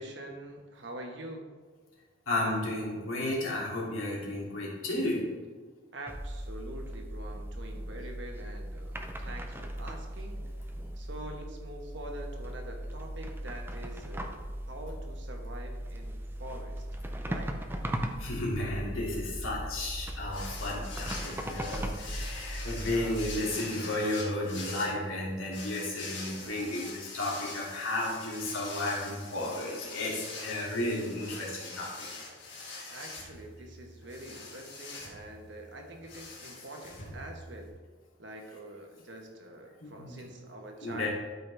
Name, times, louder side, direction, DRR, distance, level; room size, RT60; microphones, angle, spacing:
voice 1, 0.0-1.5 5.9-10.4 10.9-14.4 14.7-16.8 17.2-17.6 22.8-23.9 26.3-26.8 32.9-37.7 38.2-41.1, right 1 dB, 60° right, 2 dB, 1.3 m, -45 dB
voice 2, 2.3-5.2 18.2-32.1 39.8-40.3 40.8-41.1, left 1 dB, 85° left, -4 dB, 2.7 m, -33 dB
sound 1, 6.1-23.3, right 1 dB, 10° right, 0.5 m, -38 dB
sound 2, 20.3-37.7, left 3 dB, 60° left, 2.0 m, -44 dB
12.5 x 5.3 x 3.4 m, 1.4 s
head